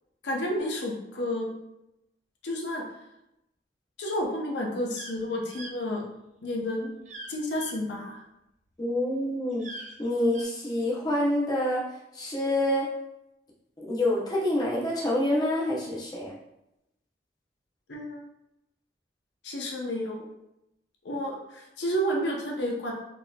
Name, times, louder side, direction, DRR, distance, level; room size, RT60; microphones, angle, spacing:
voice 1, 0.2-1.5 2.4-2.8 4.0-6.0 6.4-6.9 7.3-8.2 17.9-18.3 19.4-20.3 21.0-22.9, equal, 85° left, -1 dB, 0.7 m, -31 dB
sound 1, 4.9-5.1 5.5-5.7 7.1-7.3 7.6-7.7 9.5-10.4, right 2 dB, 40° right, 0.5 m, -42 dB
voice 2, 8.8-9.7 10.0-11.9 12.1-12.9 13.8-16.3, left 1 dB, 20° left, -5 dB, 0.6 m, -27 dB
4.1 x 2.7 x 2.3 m, 0.86 s
head